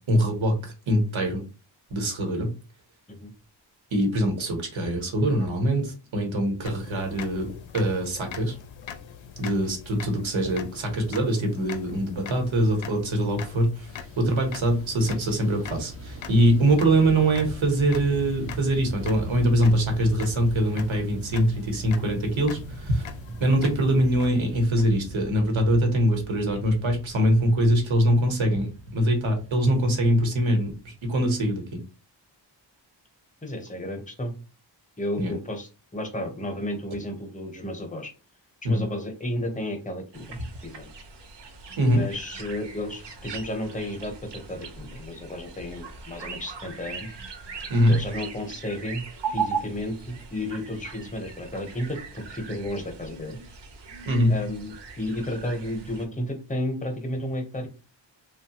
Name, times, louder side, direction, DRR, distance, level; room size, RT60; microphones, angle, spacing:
voice 1, 0.0-1.4 1.9-2.5 3.9-7.5 7.7-8.5 9.4-13.9 14.2-23.1 23.4-31.8 35.2-35.3 38.6-38.8 41.8-42.0 47.7-48.0 54.0-54.3, right 1 dB, 85° right, 3 dB, 1.1 m, -23 dB
sound 1, 6.6-25.4, left 8 dB, 80° left, 0.5 m, -43 dB
Fixed-wing aircraft airplane, 13.9-31.3, right 2 dB, 35° right, 0.4 m, -40 dB
voice 2, 33.4-34.3 35.0-38.1 38.6-40.9 41.9-47.2 47.9-53.4 54.3-57.7, left 1 dB, 15° left, 4 dB, 0.7 m, -33 dB
sound 2, 40.1-56.0, right 5 dB, 65° right, 0.7 m, -38 dB
3.1 x 2.2 x 2.8 m, 0.32 s
wide cardioid pair, 115°, 46 cm